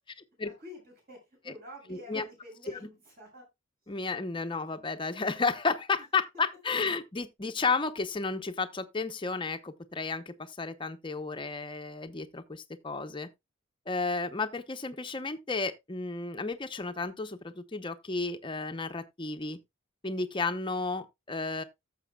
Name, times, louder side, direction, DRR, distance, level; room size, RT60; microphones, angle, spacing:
voice 1, 0.4-3.5 6.0-6.1, equal, 50° right, 6.9 m, -49 dB
voice 2, 1.9-2.2 3.9-13.3 13.9-19.6 20.0-21.6, left 4 dB, 25° left, 0.8 m, -32 dB
14.5 x 6.8 x 2.3 m
head